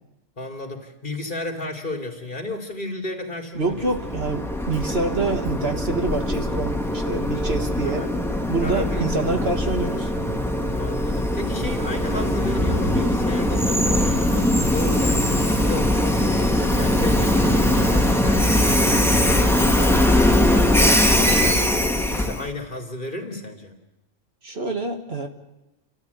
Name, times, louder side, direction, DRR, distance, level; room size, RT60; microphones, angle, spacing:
voice 1, 0.4-3.9 7.8-8.1 8.6-9.6 10.7-16.2 16.7-21.0 21.3-23.7, left 2 dB, 40° left, 2 dB, 2.9 m, -33 dB
voice 2, 3.5-8.1 8.5-10.1 24.4-25.3, right 3 dB, 55° right, 4 dB, 1.9 m, -26 dB
Train, 3.7-22.5, left 1 dB, ahead, 1.3 m, -21 dB
29.5 x 13.5 x 8.2 m, 1.0 s
omnidirectional pair, 1.2 m